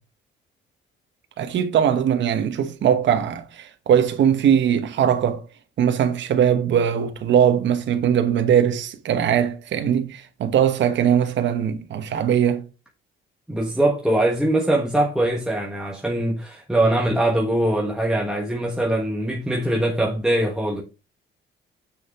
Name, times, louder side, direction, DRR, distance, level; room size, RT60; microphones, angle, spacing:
voice 1, 1.4-5.4 5.8-12.6, right 9 dB, 65° right, 1.1 m, -20 dB
voice 2, 13.5-20.8, right 1 dB, 5° right, 1.3 m, -22 dB
6.5 x 6.4 x 3.5 m
cardioid pair, 90°, 20 cm